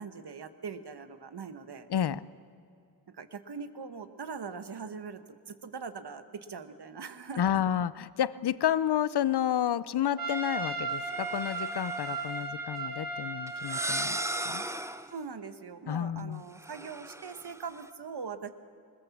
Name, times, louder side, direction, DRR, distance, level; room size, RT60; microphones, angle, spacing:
voice 1, 0.0-1.9 3.1-7.6 15.1-18.5, right 5 dB, 80° right, 10 dB, 1.2 m, -41 dB
voice 2, 1.9-2.3 7.4-14.2 14.4-14.7 15.9-16.4, left 10 dB, 75° left, 18 dB, 0.6 m, -30 dB
Trumpet, 10.2-14.6, right 3 dB, 60° right, 2.2 m, -35 dB
sound 1, 11.0-12.4 13.5-15.2 16.6-17.9, right 1 dB, 5° right, 0.5 m, -37 dB
21.0 x 20.5 x 7.2 m, 2.5 s
wide cardioid pair, 95°, 40 cm